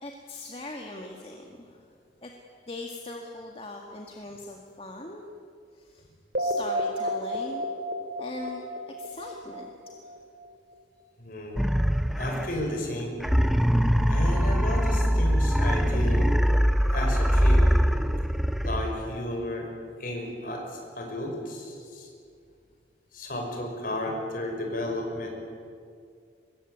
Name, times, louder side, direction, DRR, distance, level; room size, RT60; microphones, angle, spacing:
voice 1, 0.0-1.9 2.2-2.3 2.7-5.3 5.7-6.0 6.4-7.6 8.2-9.7 10.0-10.1, left 2 dB, 30° left, 1 dB, 1.9 m, -40 dB
sound 1, 6.3-10.3, equal, 60° right, 2.9 m, -31 dB
voice 2, 11.2-11.6 12.2-13.2 14.1-16.3 16.9-17.6 18.6-19.7 20.0-22.1 23.1-25.3, left 1 dB, 50° left, 2 dB, 6.0 m, -33 dB
sound 2, 11.6-12.7 13.2-19.2, equal, ahead, 0.8 m, -23 dB
24.0 x 22.0 x 9.4 m, 2.2 s
head